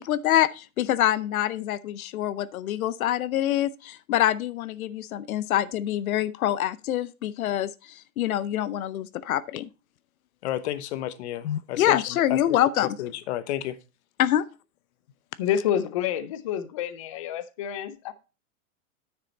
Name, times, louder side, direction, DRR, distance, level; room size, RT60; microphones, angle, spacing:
voice 1, 0.0-9.7 11.4-13.0 14.2-14.4, left 12 dB, 75° left, 0.8 m, -25 dB
voice 2, 10.4-12.4 13.0-13.8, left 12 dB, 50° left, 1.1 m, -32 dB
voice 3, 15.4-18.1, left 9 dB, 25° left, 0.4 m, -28 dB
9.5 x 6.7 x 4.1 m
hypercardioid pair, 155°, 43 cm